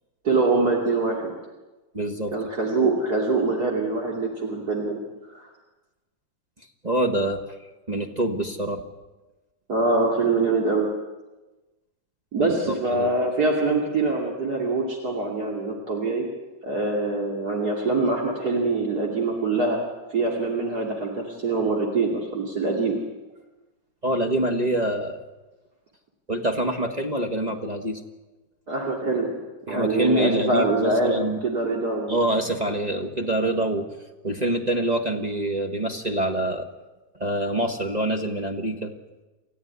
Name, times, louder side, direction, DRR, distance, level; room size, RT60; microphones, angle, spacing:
voice 1, 0.2-1.3 2.3-5.0 5.3-5.5 9.7-10.9 12.3-16.2 16.6-19.8 20.1-23.0 28.7-29.3 29.7-32.2, right 3 dB, 55° right, -1 dB, 3.2 m, -24 dB
voice 2, 1.9-2.3 6.8-7.4 7.9-8.8 12.4-13.1 24.0-25.2 26.3-28.0 29.7-31.4 32.1-33.9 34.2-36.7 37.1-38.9, right 1 dB, 20° right, 3 dB, 1.6 m, -25 dB
28.5 x 14.5 x 9.6 m, 1.1 s
omnidirectional pair, 2.0 m